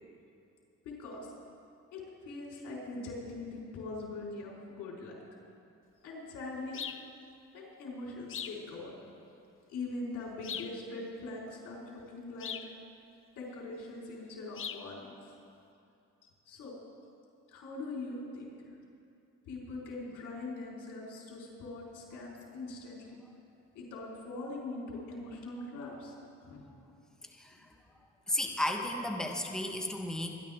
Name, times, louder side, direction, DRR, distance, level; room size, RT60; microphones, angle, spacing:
voice 1, 0.8-1.3 1.9-5.1 6.0-6.8 7.5-8.9 9.7-12.5 13.4-15.1 16.5-16.8 17.5-18.6 19.5-23.2 23.7-26.1 26.4-26.6 27.5-27.6, left 2 dB, 90° left, -4 dB, 4.2 m, -42 dB
sound 1, 6.7-7.1 8.3-8.6 10.4-10.8 12.4-12.7 14.6-14.9, left 8 dB, 45° left, 0.7 m, -40 dB
voice 2, 28.3-30.3, left 1 dB, ahead, 2 dB, 1.2 m, -33 dB
24.5 x 11.5 x 3.6 m, 2.6 s
cardioid pair, 90°, 30 cm